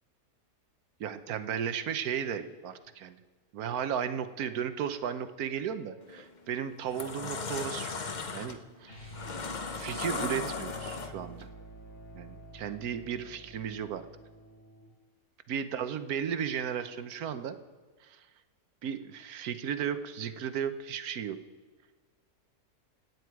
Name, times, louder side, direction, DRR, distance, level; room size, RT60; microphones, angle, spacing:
voice 1, 1.0-3.2 3.5-7.9 8.3-9.1 9.7-11.5 12.1-14.1 15.5-17.6 18.0-18.2 18.8-21.4, right 8 dB, 70° right, 11 dB, 1.3 m, -35 dB
sound 1, 6.0-6.3 6.7-11.4, left 4 dB, 35° left, 0.8 m, -37 dB
sound 2, 8.8-14.9, right 1 dB, 65° left, 3.8 m, -48 dB
25.5 x 9.6 x 4.7 m, 1.4 s
omnidirectional pair, 1.7 m